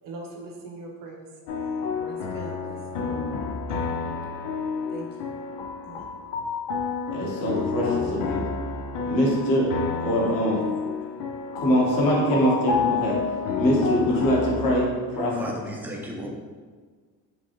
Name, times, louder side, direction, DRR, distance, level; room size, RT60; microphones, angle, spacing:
voice 1, 0.0-1.3 1.9-3.1 3.7-4.0 4.9-5.3 5.8-6.0, right 2 dB, 45° right, 0 dB, 0.9 m, -41 dB
sound 1, 1.5-14.8, left 5 dB, 75° left, 0.6 m, -30 dB
voice 2, 7.1-8.5 9.1-9.7 10.0-10.6 11.6-13.1 13.6-15.3, equal, 45° left, -4 dB, 1.2 m, -23 dB
voice 3, 15.4-16.3, equal, 5° right, -2 dB, 0.6 m, -34 dB
5.2 x 2.4 x 3.0 m, 1.6 s
supercardioid pair, 95°, 46 cm